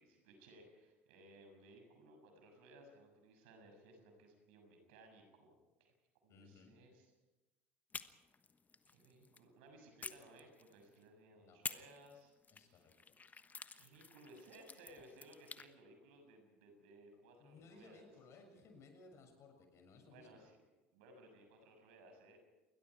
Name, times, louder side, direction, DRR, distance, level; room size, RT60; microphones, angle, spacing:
voice 1, 0.0-5.9 6.2-7.1 8.9-12.8 13.7-18.1 20.0-20.6 20.9-22.4, right 1 dB, 70° right, 4 dB, 6.6 m, -61 dB
voice 2, 6.3-6.8 11.3-11.6 12.5-13.1 17.4-20.4, left 3 dB, 45° left, 5 dB, 6.8 m, -61 dB
sound 1, 7.9-9.5 10.0-11.0 11.6-15.7, left 5 dB, 25° left, 1.3 m, -51 dB
29.0 x 22.5 x 4.8 m, 1.1 s
hypercardioid pair, 70°, 7 cm